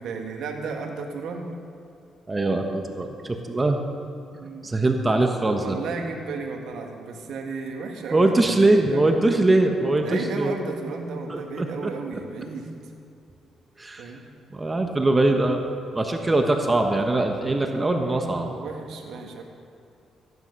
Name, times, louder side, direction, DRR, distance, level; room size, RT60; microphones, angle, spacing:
voice 1, 0.0-1.5 4.3-4.8 5.5-9.1 10.0-12.7 14.0-14.2 17.6-19.4, right 4 dB, 75° right, 2 dB, 1.8 m, -34 dB
voice 2, 2.3-3.8 4.6-5.8 8.1-10.5 11.3-11.9 13.8-14.0 14.5-18.5, right 2 dB, 20° right, 4 dB, 1.1 m, -22 dB
15.0 x 10.5 x 5.5 m, 2.4 s
cardioid pair, 90°, 0 cm